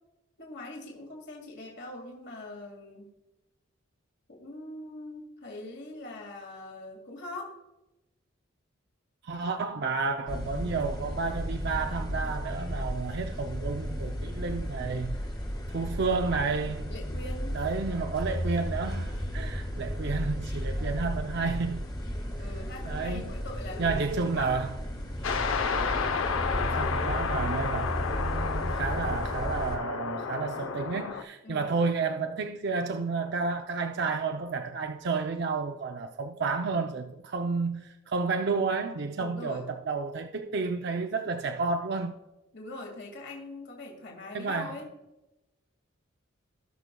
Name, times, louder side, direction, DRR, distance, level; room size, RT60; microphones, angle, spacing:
voice 1, 0.4-3.1 4.3-7.5 16.9-17.5 20.5-20.7 22.4-24.6 31.4-31.8 39.2-39.7 42.5-44.9, left 2 dB, 55° left, 2.0 m, -42 dB
voice 2, 9.2-15.2 15.7-16.9 17.5-21.9 22.9-23.4 23.8-24.8 26.6-42.2 44.3-44.8, right 4 dB, 55° right, 0.5 m, -31 dB
sound 1, 10.3-29.8, equal, 20° left, 1.3 m, -34 dB
sound 2, 25.2-31.2, left 5 dB, 75° left, 0.7 m, -31 dB
18.0 x 6.1 x 2.2 m
head